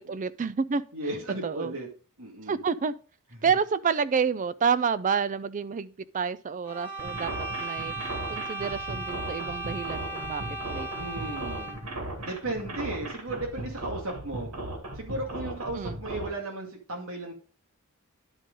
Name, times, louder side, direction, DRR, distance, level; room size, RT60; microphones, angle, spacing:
voice 1, 0.0-0.8 1.4-1.7 2.5-2.9 3.4-7.3 7.6-7.9 8.3-10.4 10.7-10.9 15.7-16.0, right 6 dB, 35° right, 0.4 m, -28 dB
voice 2, 0.9-1.9 2.2-2.6 3.4-3.5 10.9-11.8 12.2-14.5 14.9-17.3, right 2 dB, 65° right, 2.2 m, -35 dB
sound 1, 6.6-11.9, right 3 dB, 10° left, 1.2 m, -36 dB
sound 2, 7.0-16.3, right 1 dB, 90° right, 2.2 m, -37 dB
10.5 x 3.8 x 5.2 m
head